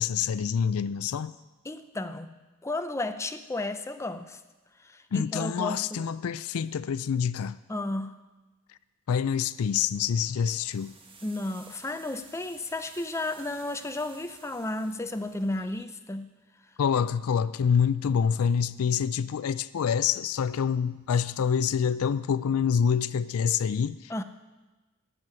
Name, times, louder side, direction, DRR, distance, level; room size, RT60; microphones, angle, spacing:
voice 1, 0.0-1.4 5.1-7.5 9.1-10.9 16.8-24.2, left 7 dB, 70° left, 16 dB, 0.4 m, -26 dB
voice 2, 1.6-2.3 2.6-4.4 4.8-6.0 7.7-8.2 11.2-16.3 24.1-24.2, left 2 dB, 15° left, 8 dB, 0.6 m, -33 dB
sound 1, 9.9-15.8, right 4 dB, 25° right, 1.1 m, -53 dB
12.0 x 7.7 x 9.0 m, 1.2 s
head